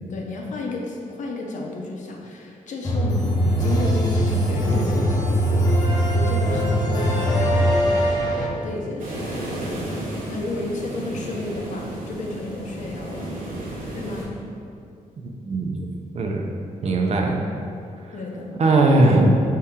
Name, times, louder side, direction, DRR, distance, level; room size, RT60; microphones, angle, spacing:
voice 1, 0.1-9.5 10.3-13.3 13.9-14.3 18.1-18.6, left 2 dB, 65° left, -1 dB, 0.6 m, -32 dB
sound 1, 2.8-8.4, equal, 30° left, 0.7 m, -21 dB
sound 2, 9.0-14.3, right 1 dB, 85° right, 0.9 m, -33 dB
voice 2, 15.4-15.9 16.1-16.5 16.8-17.4 18.6-19.3, right 2 dB, 50° right, 1 dB, 0.5 m, -18 dB
4.5 x 2.8 x 3.6 m, 2.5 s
cardioid pair, 120°, 14 cm